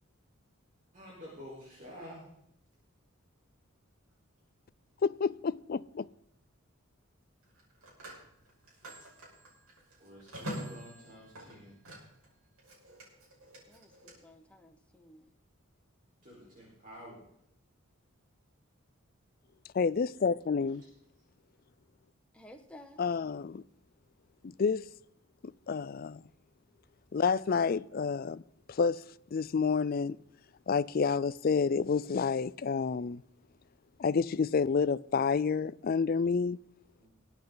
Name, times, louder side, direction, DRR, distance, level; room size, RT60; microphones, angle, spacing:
voice 1, 0.9-2.3 10.0-11.8 16.2-17.2 37.0-37.1, equal, 40° right, 4.4 m, -49 dB
voice 2, 5.0-6.1 19.7-20.8 23.0-23.6 24.4-24.9 25.4-26.2 27.1-28.4 28.7-29.0 29.3-30.2 30.7-33.2 34.0-36.6, left 5 dB, 45° left, 0.4 m, -29 dB
Telephone, 5.2-5.5 7.4-12.3 12.6-14.1, equal, 85° right, 5.9 m, -46 dB
voice 3, 13.6-15.3 22.3-23.0, left 1 dB, 5° left, 1.3 m, -54 dB
22.0 x 8.9 x 4.0 m
head